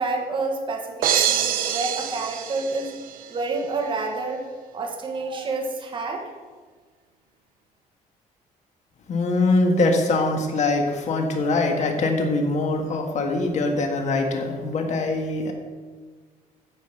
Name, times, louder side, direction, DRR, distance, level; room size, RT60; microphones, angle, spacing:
voice 1, 0.0-2.9 3.3-4.4 4.7-6.2, right 3 dB, 35° right, 2 dB, 1.6 m, -28 dB
sound 1, 1.0-3.3, right 9 dB, 65° right, 0.8 m, -25 dB
voice 2, 9.1-15.5, left 2 dB, 50° left, 3 dB, 1.7 m, -23 dB
9.3 x 5.3 x 8.1 m, 1.5 s
cardioid pair, 135°, 15 cm